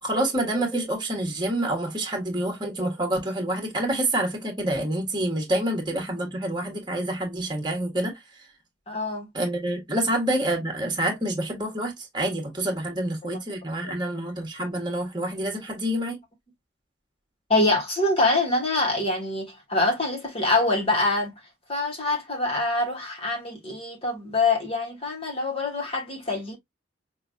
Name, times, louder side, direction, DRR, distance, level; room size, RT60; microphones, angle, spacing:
voice 1, 0.0-8.5 9.3-16.2, right 1 dB, 20° right, 1.4 m, -27 dB
voice 2, 8.9-9.3 13.8-13.9 17.5-21.3 21.7-26.6, left 2 dB, 30° left, 1.2 m, -25 dB
5.8 x 2.4 x 2.6 m
head